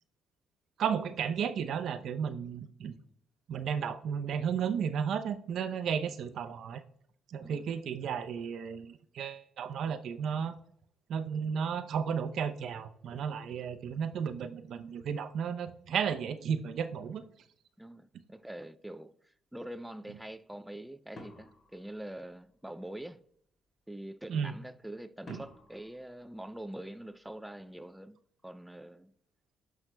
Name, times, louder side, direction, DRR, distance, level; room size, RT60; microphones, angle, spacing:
voice 1, 0.8-2.9 3.5-6.8 7.3-10.6 11.1-17.2 24.3-24.5 25.3-25.4, right 7 dB, 70° right, 0.6 m, -33 dB
voice 2, 17.8-23.2 23.9-28.2 28.4-29.1, right 1 dB, 5° right, 0.4 m, -44 dB
sound 1, 21.2-22.7 25.3-27.1, left 2 dB, 50° left, 2.5 m, -53 dB
13.5 x 5.8 x 2.2 m
cardioid pair, 90°, 0 cm